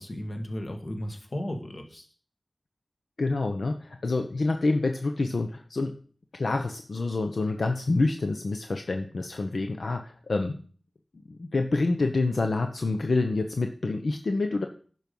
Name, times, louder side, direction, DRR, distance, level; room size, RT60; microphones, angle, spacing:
voice 1, 0.0-2.1, left 1 dB, 50° left, 4 dB, 1.9 m, -35 dB
voice 2, 3.2-6.0 6.3-10.7 11.3-14.7, left 3 dB, 80° left, 5 dB, 0.8 m, -27 dB
11.0 x 6.1 x 5.4 m, 0.42 s
wide cardioid pair, 75°, 0 cm